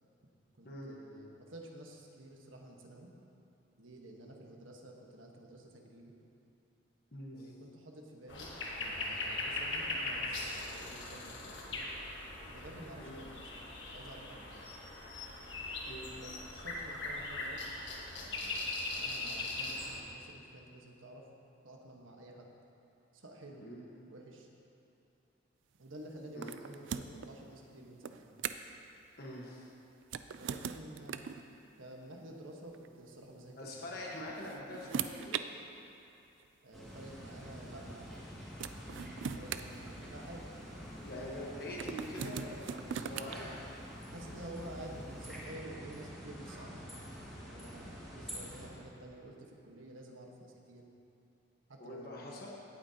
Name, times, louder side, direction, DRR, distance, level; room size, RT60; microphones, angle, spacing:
voice 1, 0.5-3.1 3.8-6.1 7.3-8.5 8.7-11.9 12.5-13.5 13.9-14.7 16.1-17.6 18.1-18.5 18.9-21.3 21.6-22.5 23.1-23.7 24.1-24.5 25.8-28.2 30.3-31.2 31.8-34.2 36.6-38.3 39.4-40.5 44.1-46.8 47.5-50.8 51.7-52.5, right 1 dB, 85° right, 0 dB, 1.3 m, -51 dB
voice 2, 7.1-7.5 13.0-13.2 15.9-16.1 23.6-23.8 26.3-26.5 29.2-29.7 33.6-35.4 41.0-43.5 51.8-52.5, left 1 dB, 50° left, -3 dB, 1.3 m, -44 dB
sound 1, 8.3-20.0, left 2 dB, 70° left, 1.4 m, -40 dB
sound 2, 26.4-27.3 28.0-28.8 30.0-31.4 32.7-32.9 34.0-35.5 36.4-36.5 38.1-38.2 38.6-40.4 41.8-43.4, right 7 dB, 70° right, 0.4 m, -40 dB
sound 3, 36.7-48.7, equal, ahead, 2.1 m, -47 dB
17.0 x 8.6 x 2.9 m, 2.8 s
head